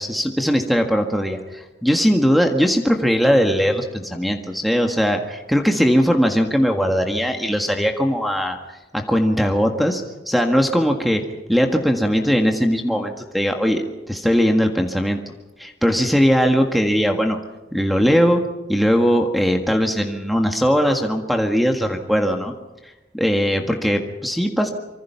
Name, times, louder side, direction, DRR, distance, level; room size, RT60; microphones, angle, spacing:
voice 1, 0.0-8.6 8.9-11.2 11.5-15.2 15.6-17.4 17.7-18.4 18.7-22.5 23.1-24.7, equal, ahead, 3 dB, 1.7 m, -19 dB
26.0 x 25.0 x 5.8 m, 1.1 s
head